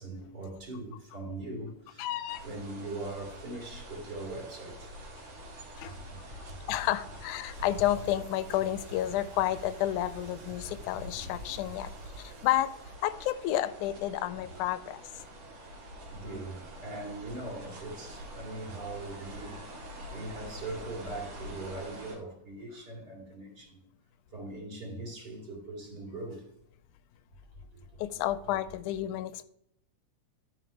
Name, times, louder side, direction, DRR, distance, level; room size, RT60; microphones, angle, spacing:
voice 1, 0.0-4.9 5.8-6.2 16.0-23.8 24.3-26.5 27.7-28.5, right 2 dB, 35° right, 3.4 m, -41 dB
voice 2, 2.0-2.4 5.8-6.0 6.7-11.9 12.2-12.7 13.0-15.0 28.0-29.4, left 13 dB, 85° left, 2.0 m, -31 dB
sound 1, 2.3-22.2, right 1 dB, 85° right, 3.9 m, -47 dB
Bicycle, 7.5-12.9, right 2 dB, 55° right, 2.1 m, -46 dB
13.0 x 5.5 x 3.3 m
omnidirectional pair, 3.5 m